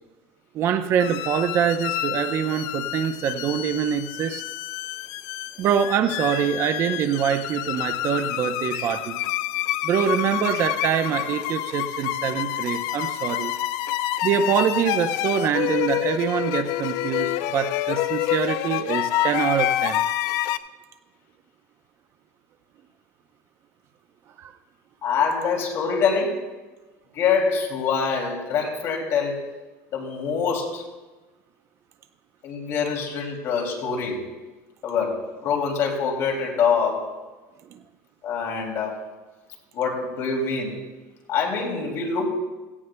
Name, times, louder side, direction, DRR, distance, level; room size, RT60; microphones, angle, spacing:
voice 1, 0.5-4.4 5.6-9.2 9.8-13.5 14.2-20.0 24.4-24.5 37.7-37.8, right 8 dB, 40° right, 9 dB, 0.7 m, -24 dB
sound 1, 1.0-20.6, left 14 dB, 60° left, 0.5 m, -28 dB
voice 2, 25.0-26.4 27.1-29.4 29.9-30.8 32.4-34.2 34.8-35.2 35.4-37.1 38.2-39.0 39.7-40.8 41.3-42.3, left 5 dB, 45° left, 1 dB, 2.7 m, -25 dB
17.0 x 15.5 x 2.2 m, 1.2 s
cardioid pair, 150°, 7 cm